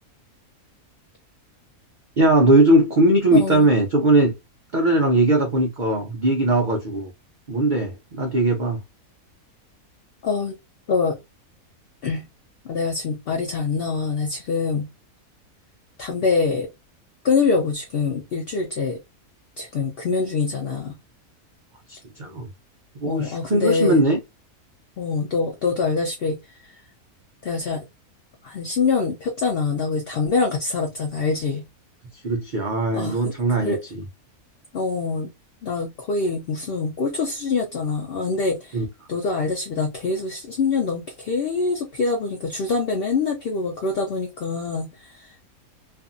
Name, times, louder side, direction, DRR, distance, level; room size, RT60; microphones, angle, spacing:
voice 1, 2.2-4.3 4.7-7.1 7.5-8.8 21.9-22.5 23.0-24.2 32.1-33.8 38.7-38.9, right 2 dB, 80° right, 0.4 m, -19 dB
voice 2, 3.3-3.7 10.2-10.6 10.9-11.2 12.0-12.2 12.6-14.9 16.0-16.7 17.2-19.0 19.6-21.0 23.0-24.0 25.0-26.8 27.4-27.8 28.4-31.7 32.9-33.3 33.6-33.8 34.7-35.3 35.6-38.8 39.1-45.5, left 4 dB, 60° left, 0.6 m, -25 dB
2.5 x 2.5 x 2.5 m
omnidirectional pair, 1.6 m